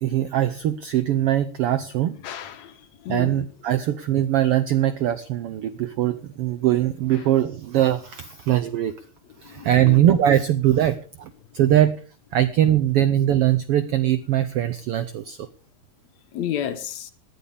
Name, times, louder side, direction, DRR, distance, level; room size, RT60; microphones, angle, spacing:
voice 1, 0.0-2.1 3.1-8.9 9.4-12.0 12.3-15.5, right 12 dB, 80° right, 1.3 m, -21 dB
voice 2, 2.2-2.7 3.1-3.4 9.6-10.1 16.3-17.1, left 10 dB, 70° left, 2.2 m, -30 dB
18.5 x 11.0 x 3.4 m
omnidirectional pair, 3.5 m